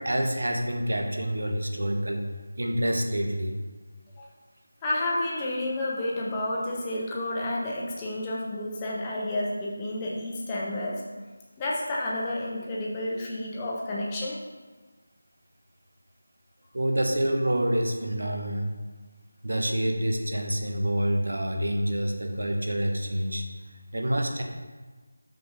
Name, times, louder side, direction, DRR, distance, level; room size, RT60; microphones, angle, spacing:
voice 1, 0.0-2.3 2.6-3.5 16.7-18.7 19.4-23.4 23.9-24.4, right 1 dB, 75° right, 3 dB, 1.2 m, -27 dB
voice 2, 4.8-11.0 11.6-14.4, left 1 dB, 10° left, -4 dB, 0.6 m, -30 dB
5.9 x 5.0 x 5.4 m, 1.3 s
figure-of-eight pair, 180°, 0 cm